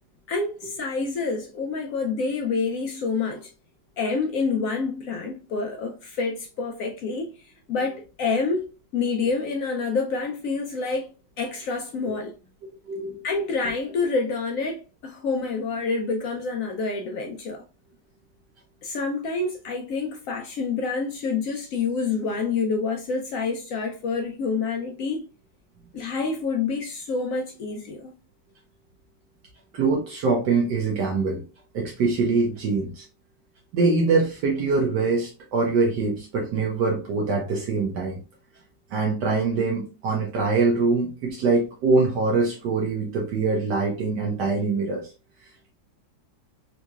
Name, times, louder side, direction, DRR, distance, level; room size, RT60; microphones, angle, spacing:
voice 1, 0.3-3.5 4.0-8.7 8.9-11.1 11.4-12.3 13.2-17.6 18.8-25.3 25.9-28.1, left 4 dB, 80° left, 0.7 m, -27 dB
voice 2, 12.9-13.2 29.7-31.4 31.7-33.0 33.7-38.2 38.9-45.1, right 3 dB, 75° right, 1.3 m, -23 dB
3.6 x 3.0 x 2.3 m
omnidirectional pair, 2.0 m